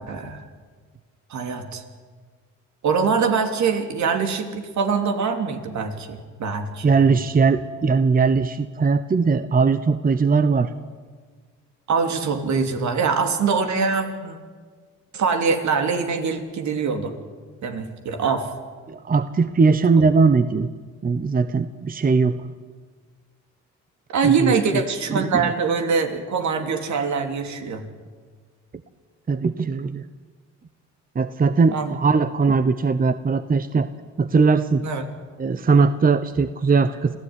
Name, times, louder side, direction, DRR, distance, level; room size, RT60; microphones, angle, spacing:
voice 1, 0.1-0.4 1.3-1.8 2.8-6.9 11.9-14.4 15.1-17.1 17.6-18.5 20.0-20.1 24.1-27.9 31.7-31.9 34.8-35.0, right 5 dB, 70° right, 6 dB, 3.2 m, -23 dB
voice 2, 6.8-10.7 18.9-20.7 21.0-22.4 24.2-24.8 25.1-25.5 29.3-30.0 31.1-33.9 34.2-34.8 35.4-37.2, right 4 dB, 30° right, 12 dB, 1.0 m, -20 dB
26.5 x 16.0 x 9.8 m, 1.5 s
cardioid pair, 90°, 30 cm